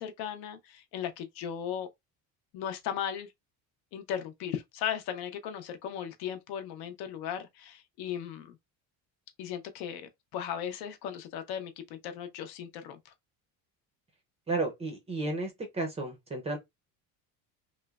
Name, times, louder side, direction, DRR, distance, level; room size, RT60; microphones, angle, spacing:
voice 1, 0.0-1.9 2.5-3.3 3.9-8.6 9.4-13.1, left 9 dB, 75° left, 0.7 m, -37 dB
voice 2, 14.5-16.6, right 2 dB, 15° right, 0.4 m, -33 dB
3.1 x 2.0 x 2.3 m
cardioid pair, 170°, 38 cm